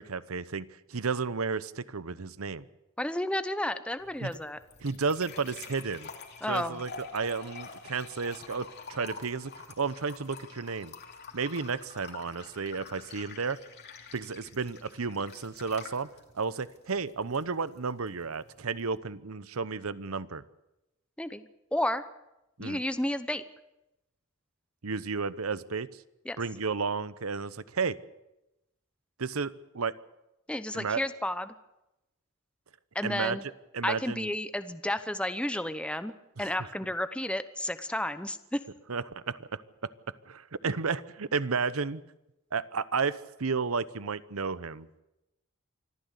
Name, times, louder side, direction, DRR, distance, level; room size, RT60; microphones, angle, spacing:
voice 1, 0.0-2.7 4.2-4.3 4.8-6.1 6.5-9.5 9.8-10.9 11.3-13.6 14.1-16.1 16.3-20.4 22.6-22.8 24.8-25.9 26.4-27.9 29.2-29.9 30.7-31.0 33.0-33.4 33.7-34.3 36.4-36.5 38.9-39.9 40.3-42.0 42.5-44.9, right 5 dB, 90° right, 17 dB, 0.9 m, -32 dB
voice 2, 3.0-4.6 6.4-6.8 21.2-22.0 22.6-23.4 26.2-26.4 30.5-31.5 32.9-33.4 33.8-38.6, left 1 dB, 5° left, 11 dB, 0.8 m, -32 dB
sound 1, 4.0-19.0, left 4 dB, 50° left, 2.9 m, -48 dB
25.0 x 14.5 x 8.3 m, 0.92 s
head